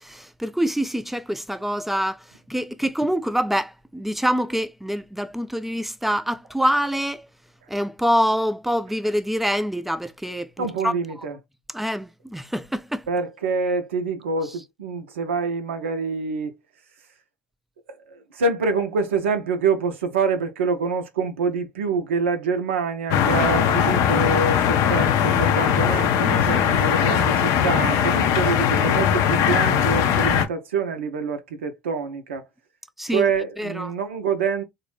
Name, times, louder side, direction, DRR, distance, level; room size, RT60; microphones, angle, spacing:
voice 1, 0.0-7.3 7.7-10.9 11.7-13.1 26.3-26.6 33.0-33.3 33.6-33.9, equal, 5° right, 0.3 m, -25 dB
voice 2, 10.6-11.4 13.1-16.6 17.9-32.5 33.1-34.6, right 4 dB, 85° right, 0.4 m, -26 dB
sound 1, 23.1-30.5, left 8 dB, 60° left, 0.5 m, -20 dB
2.5 x 2.0 x 3.1 m
hypercardioid pair, 65°, 6 cm